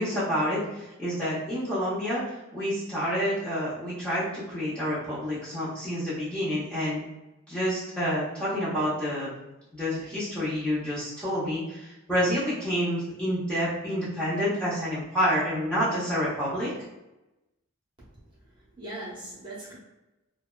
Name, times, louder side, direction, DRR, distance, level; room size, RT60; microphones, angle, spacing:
voice 1, 0.0-2.2 2.5-7.0 7.5-9.3 9.7-16.7, equal, 5° left, -12 dB, 0.7 m, -28 dB
voice 2, 18.3-19.8, right 1 dB, 20° right, -9 dB, 0.8 m, -40 dB
2.6 x 2.1 x 2.2 m, 0.99 s
head